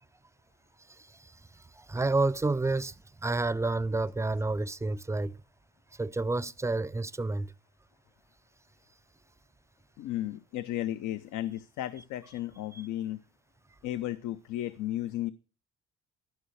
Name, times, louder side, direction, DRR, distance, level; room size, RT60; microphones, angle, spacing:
voice 1, 1.0-1.3 1.8-2.9 3.2-5.4 6.0-7.5 12.7-12.8, right 2 dB, 10° right, 0.4 m, -29 dB
voice 2, 10.0-13.2 13.8-15.3, left 13 dB, 85° left, 0.6 m, -34 dB
13.0 x 5.7 x 6.2 m
cardioid pair, 90°, 30 cm